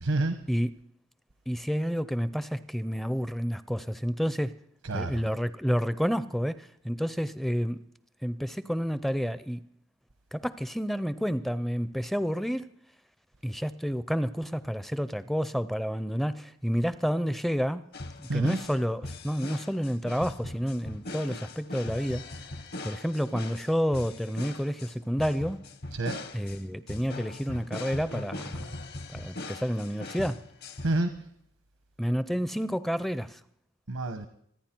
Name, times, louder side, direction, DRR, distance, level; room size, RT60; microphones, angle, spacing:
voice 1, 0.0-0.4 4.8-5.2 18.3-18.6 25.9-26.2 30.8-31.1 33.9-34.3, right 2 dB, 85° right, 1.1 m, -28 dB
voice 2, 1.5-4.6 4.9-7.8 8.2-9.6 10.3-12.7 13.4-17.8 18.2-22.2 22.8-25.6 26.3-28.7 29.1-30.4 32.0-33.4, equal, ahead, 0.5 m, -30 dB
sound 1, 17.9-31.0, left 2 dB, 50° left, 1.0 m, -40 dB
25.5 x 9.7 x 4.5 m
head